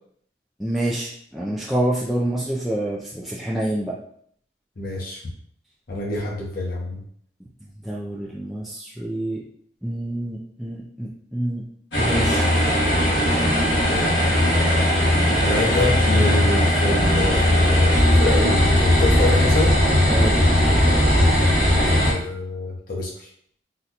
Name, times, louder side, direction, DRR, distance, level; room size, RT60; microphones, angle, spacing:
voice 1, 0.6-4.0 7.8-9.5 9.8-11.6 12.0-12.5 20.1-20.4, right 1 dB, ahead, -6 dB, 0.3 m, -27 dB
voice 2, 4.8-5.2 5.9-7.0 13.9-14.1 15.4-19.7 22.0-23.3, left 2 dB, 55° left, -3 dB, 0.7 m, -26 dB
sound 1, 11.9-22.1, left 1 dB, 80° left, 1.2 m, -18 dB
3.9 x 2.2 x 2.8 m, 0.64 s
head